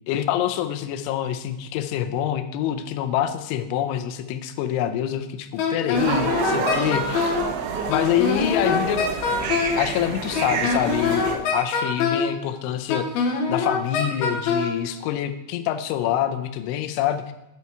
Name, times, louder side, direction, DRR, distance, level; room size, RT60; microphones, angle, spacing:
voice 1, 0.1-7.4 7.9-9.0 9.8-13.1 13.5-17.3, left 11 dB, 90° left, 9 dB, 3.1 m, -26 dB
Wind instrument woodwind instrument, 5.6-7.4 7.9-9.8 10.3-12.3 12.9-14.7, left 5 dB, 70° left, 2.6 m, -24 dB
sound 1, 6.0-11.4, right 5 dB, 80° right, 3.1 m, -28 dB
10.5 x 5.6 x 4.6 m, 0.88 s
omnidirectional pair, 5.4 m